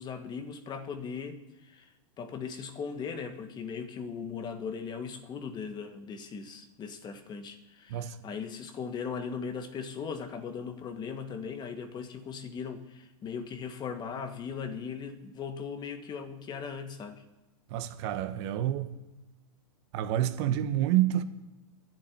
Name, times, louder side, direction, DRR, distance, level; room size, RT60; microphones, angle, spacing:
voice 1, 0.0-17.2, left 6 dB, 25° left, 1.4 m, -38 dB
voice 2, 17.7-18.9 19.9-21.2, right 12 dB, 50° right, 1.2 m, -28 dB
10.5 x 7.5 x 9.8 m
hypercardioid pair, 130°, 18 cm